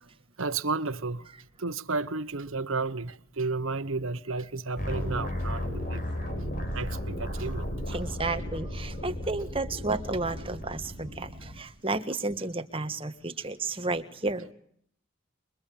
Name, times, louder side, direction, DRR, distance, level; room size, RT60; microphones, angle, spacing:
voice 1, 0.4-1.3 1.6-6.0 6.7-8.0, right 3 dB, 75° right, 1.2 m, -32 dB
sound 1, 4.8-11.6, left 1 dB, 40° left, 6.0 m, -34 dB
voice 2, 7.9-14.5, right 3 dB, 25° right, 1.6 m, -32 dB
27.5 x 23.0 x 8.7 m
head